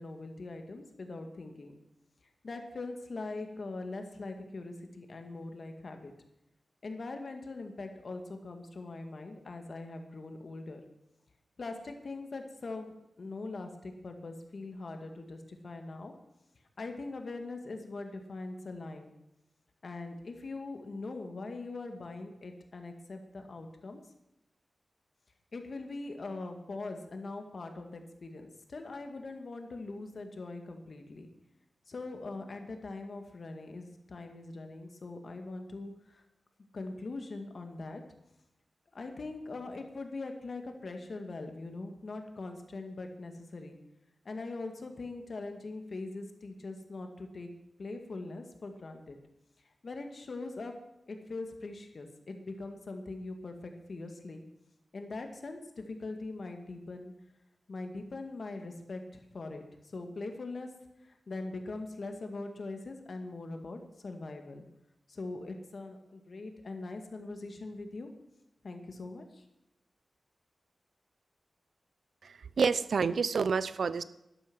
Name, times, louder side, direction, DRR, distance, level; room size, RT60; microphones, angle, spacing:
voice 1, 0.0-1.7 2.4-6.1 6.8-10.8 11.6-16.1 16.8-19.1 19.8-24.0 25.5-31.3 31.9-36.2 36.7-38.0 38.9-43.8 44.3-47.5 47.8-49.2 49.7-50.7 51.1-54.4 54.9-57.1 57.7-60.7 61.0-64.6 65.1-68.1 68.6-69.4, left 3 dB, 60° left, 5 dB, 2.0 m, -42 dB
voice 2, 72.2-74.0, right 5 dB, 85° right, 16 dB, 0.5 m, -29 dB
12.0 x 11.5 x 6.2 m, 0.87 s
wide cardioid pair, 100°, 0 cm